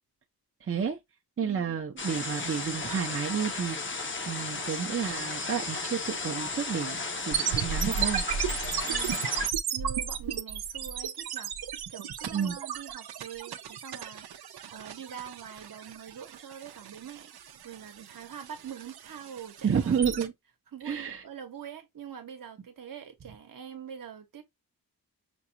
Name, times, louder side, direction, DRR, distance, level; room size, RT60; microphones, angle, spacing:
voice 1, 0.6-1.0 1.4-4.0 4.3-8.2 12.3-12.6 19.6-20.3 20.8-21.2, right 7 dB, 35° right, 0.6 m, -30 dB
voice 2, 1.4-1.8 8.8-9.3 9.7-11.5 11.9-17.3 17.6-19.9 20.7-24.4, right 8 dB, 60° right, 1.0 m, -44 dB
sound 1, 2.0-9.5, left 3 dB, 30° left, 0.7 m, -35 dB
sound 2, 7.3-20.3, right 7 dB, 80° right, 0.7 m, -34 dB
6.0 x 2.3 x 2.7 m
wide cardioid pair, 165°, 38 cm